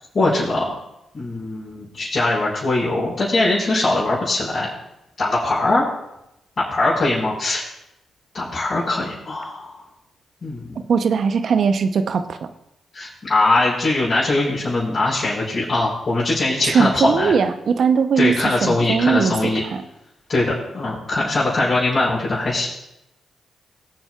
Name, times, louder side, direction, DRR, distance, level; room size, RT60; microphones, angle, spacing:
voice 1, 0.1-0.7 1.1-4.7 5.2-5.9 6.7-7.6 8.3-9.8 10.4-10.8 12.9-17.3 18.2-19.6 20.3-22.7, left 2 dB, 45° left, -11 dB, 4.8 m, -21 dB
voice 2, 10.9-12.5 16.6-19.8, right 6 dB, 60° right, 9 dB, 0.8 m, -20 dB
20.5 x 8.0 x 2.5 m, 0.87 s
hypercardioid pair, 40°, 0 cm